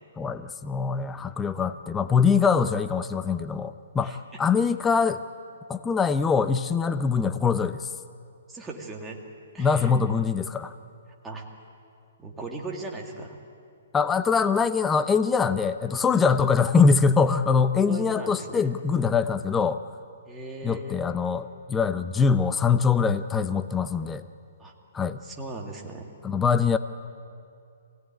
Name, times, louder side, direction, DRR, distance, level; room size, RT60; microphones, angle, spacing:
voice 1, 0.2-5.2 5.7-7.9 9.6-10.7 13.9-19.8 20.6-24.2 24.9-25.2 26.2-26.8, left 5 dB, 10° left, 11 dB, 0.5 m, -23 dB
voice 2, 8.5-9.2 9.5-9.9 11.2-11.5 12.2-13.4 17.8-18.7 20.3-21.0 24.6-24.7 25.2-26.1, right 2 dB, 10° right, -1 dB, 2.1 m, -38 dB
23.5 x 17.0 x 9.9 m, 2.4 s
hypercardioid pair, 160°, 0 cm